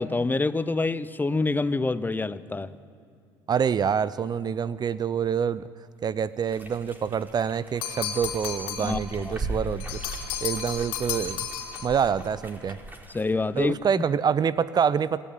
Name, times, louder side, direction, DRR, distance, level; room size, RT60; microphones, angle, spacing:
voice 1, 0.0-2.7 8.8-9.0 9.3-9.4 13.1-14.0, left 3 dB, 15° left, 16 dB, 0.8 m, -26 dB
voice 2, 3.5-5.7 6.0-10.0 10.4-11.5 11.8-12.8 13.6-15.3, right 7 dB, 35° right, 18 dB, 0.6 m, -26 dB
sound 1, 6.4-13.3, right 2 dB, 15° right, 4.1 m, -39 dB
sound 2, 7.8-9.0 9.8-12.0, left 8 dB, 80° left, 2.9 m, -33 dB
27.0 x 12.5 x 9.2 m, 2.6 s
hypercardioid pair, 65°, 11 cm